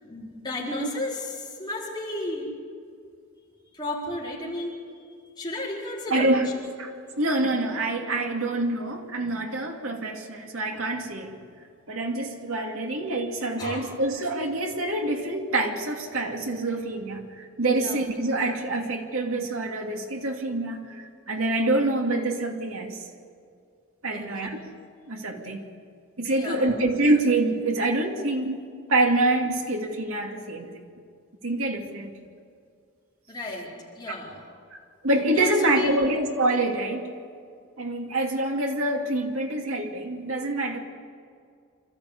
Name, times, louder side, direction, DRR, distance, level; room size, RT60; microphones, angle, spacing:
voice 1, 0.0-2.5 3.7-4.8 5.4-6.3 13.6-13.8 17.7-18.0 24.1-24.3 26.3-26.7 33.3-33.7 33.9-34.4 35.3-35.9, left 1 dB, 20° left, -5 dB, 4.6 m, -33 dB
voice 2, 6.1-6.5 6.8-11.3 11.9-23.0 24.0-24.6 25.1-25.6 26.2-28.6 28.9-30.8 31.4-32.2 35.0-37.1 37.8-40.8, right 2 dB, 85° right, 2 dB, 2.5 m, -26 dB
26.0 x 13.5 x 8.4 m, 2.2 s
head